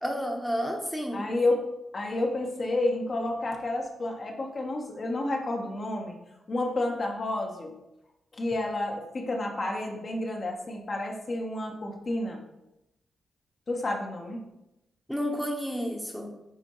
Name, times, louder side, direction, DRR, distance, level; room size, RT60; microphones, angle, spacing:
voice 1, 0.0-1.3 15.1-16.3, equal, ahead, 1 dB, 1.0 m, -31 dB
voice 2, 1.1-1.7 1.9-6.2 6.5-7.8 8.3-12.4 13.7-14.4, left 2 dB, 45° left, 1 dB, 1.2 m, -30 dB
9.6 x 3.4 x 3.1 m, 0.89 s
cardioid pair, 85°, 0 cm